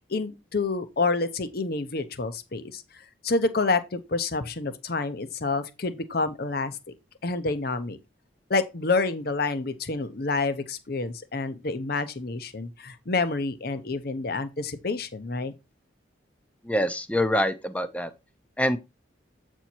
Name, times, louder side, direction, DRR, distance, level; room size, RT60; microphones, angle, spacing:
voice 1, 0.1-2.8 3.2-6.8 7.2-8.0 8.5-15.5, left 3 dB, 50° left, 0.8 m, -28 dB
voice 2, 16.7-18.1 18.6-18.8, equal, 5° left, 0.6 m, -25 dB
8.1 x 4.5 x 4.4 m
head